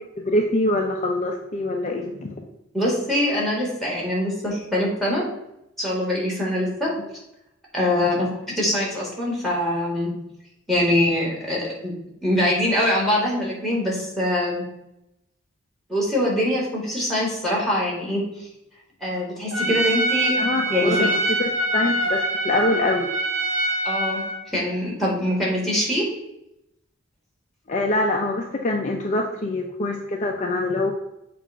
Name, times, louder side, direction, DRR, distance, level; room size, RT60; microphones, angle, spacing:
voice 1, 0.2-2.3 20.4-21.1 21.4-23.1 27.7-30.9, left 2 dB, 35° left, 1 dB, 0.5 m, -24 dB
voice 2, 2.7-5.2 5.8-6.9 7.7-8.3 8.6-10.1 10.7-11.9 12.2-14.6 15.9-18.5 19.0-20.3 20.7-21.1 23.9-24.2 24.5-26.1, left 1 dB, ahead, -3 dB, 1.8 m, -23 dB
Trumpet, 19.5-24.4, right 1 dB, 70° right, 1.2 m, -24 dB
7.1 x 2.5 x 5.5 m, 0.85 s
head